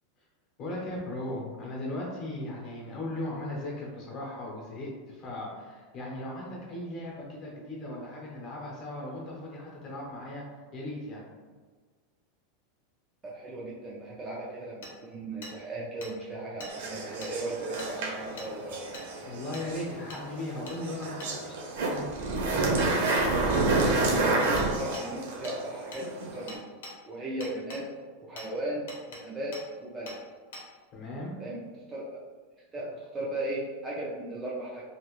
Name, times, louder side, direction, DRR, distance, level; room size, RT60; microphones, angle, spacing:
voice 1, 0.6-10.4 10.7-11.2 19.2-21.5 21.9-22.1 30.9-31.3, left 1 dB, 30° left, -3 dB, 0.8 m, -37 dB
voice 2, 13.2-18.8 23.1-26.6 27.0-27.9 28.2-30.2 31.4-31.6 31.9-32.2 32.7-34.8, right 1 dB, 10° right, -5 dB, 0.3 m, -36 dB
Hammer, 14.8-14.9 15.4-15.5 16.0-16.1 16.6-16.7 17.2-17.3 17.8-17.9 18.4-18.5 18.9-19.1 19.5-19.7 20.1-20.2 20.7-20.8 21.2-21.3 22.8-22.9 24.6-24.7 24.9-25.1 25.4-25.6 25.9-26.0 26.5-26.9 27.4-27.8 28.4-28.5 28.9-29.2 29.5-29.6 30.1-30.2 30.5-30.6, left 2 dB, 80° left, 0.9 m, -43 dB
sound 1, 16.7-26.5, right 3 dB, 60° right, 0.6 m, -29 dB
2.8 x 2.6 x 3.0 m, 1.4 s
supercardioid pair, 180°, 0 cm